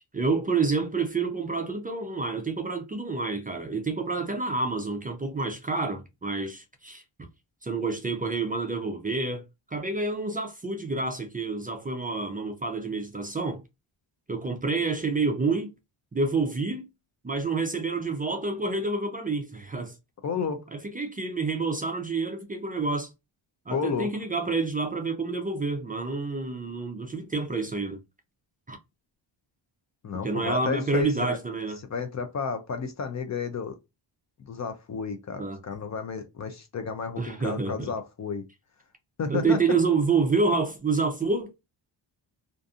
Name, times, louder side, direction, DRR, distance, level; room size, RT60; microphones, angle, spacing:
voice 1, 0.0-7.0 7.6-9.4 9.7-13.6 14.3-15.7 16.1-16.9 17.2-20.0 20.9-23.1 23.7-28.0 28.7-28.8 30.2-31.8 35.4-35.6 37.2-37.9 39.3-41.6, right 3 dB, 20° right, 0.4 m, -28 dB
voice 2, 20.2-20.6 23.7-24.1 30.0-31.4 31.9-33.8 34.5-38.4 39.2-39.6, left 5 dB, 40° left, 0.4 m, -32 dB
2.6 x 2.5 x 2.3 m
wide cardioid pair, 130°, 46 cm